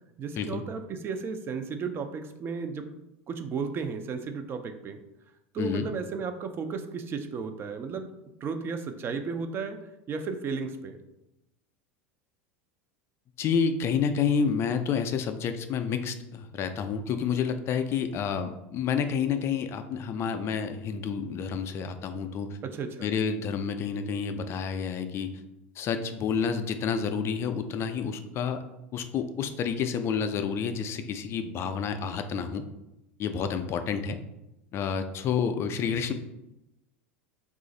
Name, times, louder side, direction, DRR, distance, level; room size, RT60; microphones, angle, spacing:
voice 1, 0.2-2.9 3.3-5.0 5.5-8.1 8.4-9.8 10.1-11.0 22.6-23.1, right 5 dB, 35° right, 7 dB, 0.4 m, -34 dB
voice 2, 5.6-5.9 13.4-22.6 23.0-25.4 25.8-28.6 28.9-32.6 33.2-34.2 34.7-36.1, left 6 dB, 40° left, 8 dB, 0.3 m, -29 dB
3.1 x 2.4 x 3.8 m, 0.90 s
hypercardioid pair, 85°, 7 cm